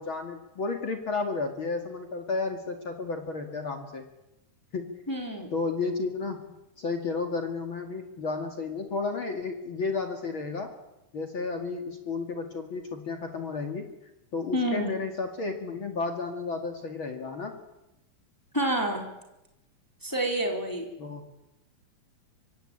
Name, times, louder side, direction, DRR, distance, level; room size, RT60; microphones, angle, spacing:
voice 1, 0.0-4.1 4.7-4.9 5.5-10.7 11.1-13.9 14.3-17.5 21.0-21.2, left 4 dB, 45° left, 4 dB, 2.7 m, -32 dB
voice 2, 5.1-5.5 14.5-14.9 18.5-19.1 20.0-20.9, right 1 dB, 5° left, 2 dB, 3.7 m, -28 dB
25.0 x 24.5 x 8.9 m, 0.92 s
omnidirectional pair, 3.6 m